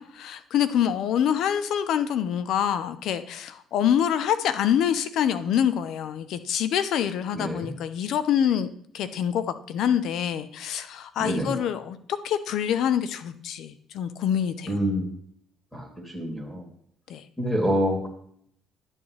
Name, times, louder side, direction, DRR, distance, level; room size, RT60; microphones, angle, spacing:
voice 1, 0.0-14.8 17.1-17.2, left 9 dB, 75° left, 12 dB, 0.7 m, -26 dB
voice 2, 7.3-7.7 11.2-11.5 14.7-15.1 15.7-15.9 16.1-16.6 17.4-18.1, equal, 5° left, 1 dB, 2.7 m, -26 dB
10.5 x 7.3 x 3.2 m, 0.66 s
cardioid pair, 90°, 0 cm